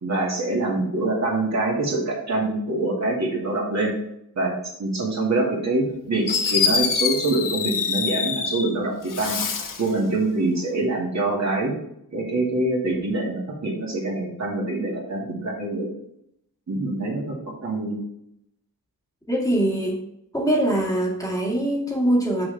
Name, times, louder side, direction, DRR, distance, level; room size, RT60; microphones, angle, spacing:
voice 1, 0.0-3.9 4.4-4.5 4.8-9.3 9.8-11.7 12.1-15.9 16.7-18.0, right 2 dB, 45° right, -3 dB, 2.2 m, -25 dB
Fireworks, 5.9-6.0 6.3-8.7 9.1-9.9, left 6 dB, 60° left, 1.0 m, -25 dB
voice 2, 19.3-20.0 20.3-22.5, right 1 dB, 10° left, -4 dB, 1.9 m, -22 dB
7.2 x 6.1 x 3.5 m, 0.77 s
wide cardioid pair, 160°, 36 cm